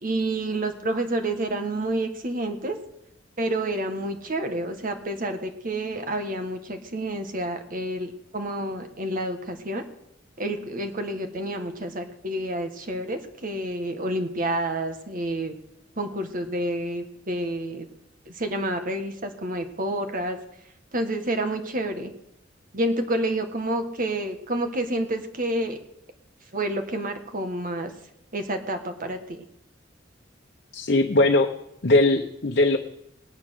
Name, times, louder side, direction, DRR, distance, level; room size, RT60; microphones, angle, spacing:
voice 1, 0.0-2.8 3.4-9.8 10.4-15.6 16.0-17.9 18.3-20.4 20.9-22.1 22.7-25.8 26.5-27.9 28.3-29.4, right 1 dB, 45° right, 6 dB, 1.6 m, -29 dB
voice 2, 30.7-31.5 31.8-32.8, left 2 dB, 60° left, 3 dB, 1.0 m, -20 dB
18.5 x 9.7 x 6.5 m, 0.78 s
head